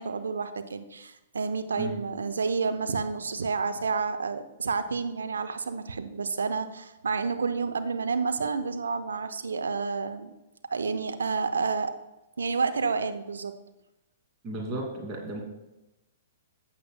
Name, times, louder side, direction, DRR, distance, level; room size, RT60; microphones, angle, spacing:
voice 1, 0.0-10.3 10.7-11.9 12.4-13.5, right 4 dB, 70° right, 8 dB, 0.8 m, -30 dB
voice 2, 14.4-15.4, right 1 dB, 30° right, 0 dB, 2.5 m, -34 dB
14.5 x 8.6 x 2.2 m, 0.99 s
figure-of-eight pair, 110°, 0 cm